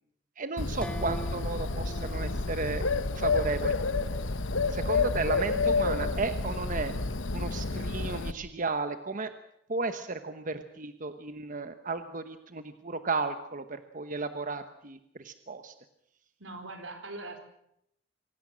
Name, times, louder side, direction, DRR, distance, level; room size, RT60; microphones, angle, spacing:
voice 1, 0.4-2.9 3.2-3.7 4.7-6.9 7.3-9.3 9.7-15.7, right 3 dB, 45° right, 9 dB, 1.1 m, -34 dB
Bird, 0.6-8.3, left 3 dB, 85° left, 1.1 m, -29 dB
sound 1, 0.8-3.6, equal, 5° left, 1.3 m, -43 dB
voice 2, 16.4-17.4, right 2 dB, 85° right, 6 dB, 4.5 m, -41 dB
25.0 x 17.5 x 7.6 m, 0.76 s
head